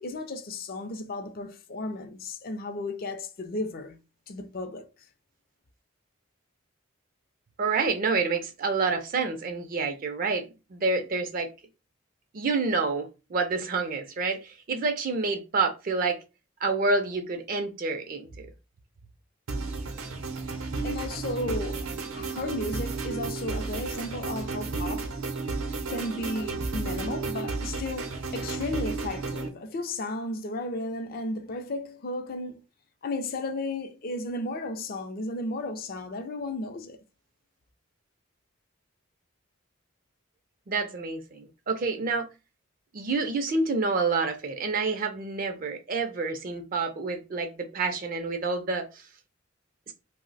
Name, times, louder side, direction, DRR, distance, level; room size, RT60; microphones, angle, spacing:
voice 1, 0.0-4.9 20.8-25.2 25.9-32.6 33.0-37.0, left 2 dB, 45° left, 0.4 m, -34 dB
voice 2, 7.6-11.5 12.3-16.2 16.6-18.3 40.7-42.3 42.9-49.0 49.9-50.0, right 4 dB, 40° right, 0.4 m, -28 dB
sound 1, 19.5-29.5, right 3 dB, 85° right, 0.6 m, -33 dB
2.7 x 2.0 x 3.9 m
head